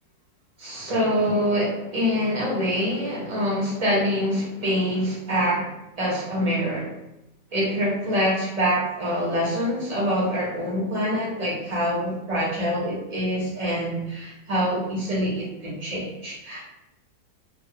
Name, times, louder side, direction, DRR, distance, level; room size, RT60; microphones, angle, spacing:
voice 1, 0.6-5.7 6.0-6.9 7.5-16.7, equal, 40° right, -6 dB, 0.6 m, -25 dB
2.9 x 2.1 x 2.8 m, 0.89 s
omnidirectional pair, 1.9 m